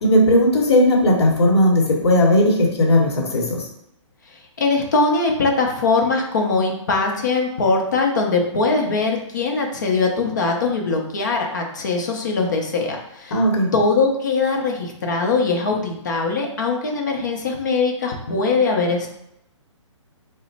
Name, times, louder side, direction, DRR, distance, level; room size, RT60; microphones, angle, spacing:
voice 1, 0.0-3.7 13.3-13.7, left 1 dB, 55° left, -1 dB, 0.9 m, -16 dB
voice 2, 4.6-13.4 13.7-19.1, left 3 dB, 35° left, 1 dB, 0.6 m, -21 dB
3.0 x 2.1 x 4.0 m, 0.78 s
hypercardioid pair, 175°, 17 cm